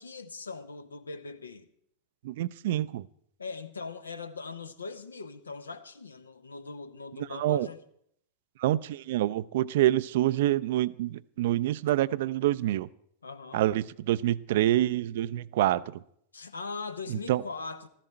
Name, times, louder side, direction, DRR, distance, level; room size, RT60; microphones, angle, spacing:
voice 1, 0.0-1.7 3.4-7.8 13.2-13.7 16.3-17.9, left 4 dB, 75° left, 0.9 m, -40 dB
voice 2, 2.2-3.1 7.4-7.7 8.6-12.9 13.5-16.0 17.1-17.4, right 14 dB, 55° right, 0.4 m, -27 dB
15.0 x 13.5 x 4.3 m
figure-of-eight pair, 90°, 0 cm